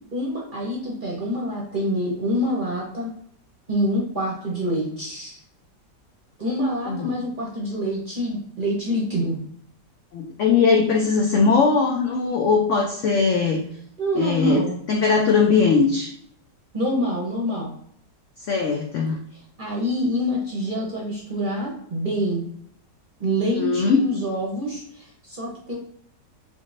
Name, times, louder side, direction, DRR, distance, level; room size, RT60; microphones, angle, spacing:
voice 1, 0.1-3.1 3.7-5.4 6.4-9.4 14.0-14.8 16.7-17.7 19.6-22.4 23.2-25.8, equal, 45° right, -3 dB, 0.7 m, -26 dB
voice 2, 10.1-13.6 14.2-14.6 14.9-16.1 18.5-19.2 23.5-24.0, left 5 dB, 90° left, 0 dB, 0.6 m, -20 dB
3.8 x 3.7 x 2.5 m, 0.67 s
omnidirectional pair, 1.9 m